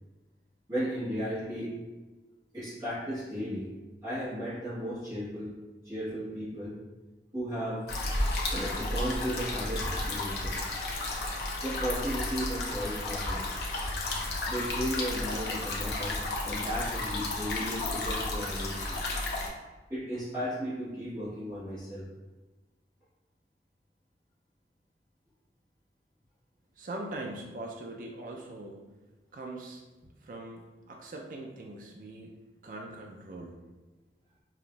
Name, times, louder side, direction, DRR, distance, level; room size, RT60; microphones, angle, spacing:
voice 1, 0.7-1.7 2.5-3.7 4.0-5.5 5.8-6.8 7.3-7.8 8.5-10.6 11.6-13.5 14.5-16.2 16.4-19.0 19.9-22.1, equal, 20° right, -13 dB, 1.1 m, -35 dB
sound 1, 7.9-19.5, left 2 dB, 65° left, 0.7 m, -33 dB
voice 2, 26.8-28.8 29.3-29.8 30.2-32.3 32.6-33.6, right 2 dB, 50° right, 0 dB, 0.4 m, -41 dB
5.5 x 2.5 x 2.3 m, 1.2 s
head